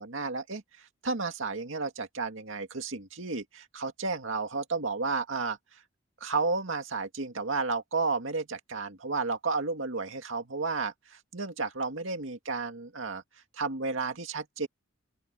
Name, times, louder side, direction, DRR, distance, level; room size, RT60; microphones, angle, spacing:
voice 1, 0.0-5.8 6.2-13.2 13.5-14.7, right 4 dB, 85° right, 2.1 m, -32 dB
open air
head